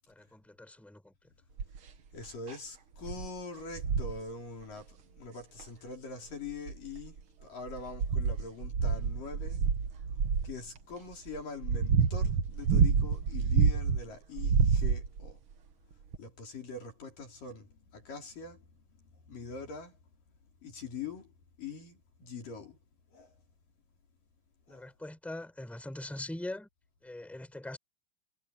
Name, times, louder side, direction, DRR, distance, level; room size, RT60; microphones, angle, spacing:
voice 1, 0.1-1.1 24.7-26.7 27.0-27.8, left 1 dB, ahead, 5.9 m, -42 dB
sound 1, 1.6-1.9 2.5-2.6 3.0-3.3 3.7-4.2 5.6-5.7 6.5-7.2 7.7-10.5 11.3-14.0 14.4-15.3 16.1-16.2, right 6 dB, 60° right, 1.4 m, -28 dB
voice 2, 2.1-7.2 7.4-9.7 10.4-15.4 16.2-18.6 19.3-20.0 20.6-21.3 21.6-22.8 23.1-23.3 24.7-24.9, left 4 dB, 60° left, 5.9 m, -43 dB
omnidirectional pair, 4.4 m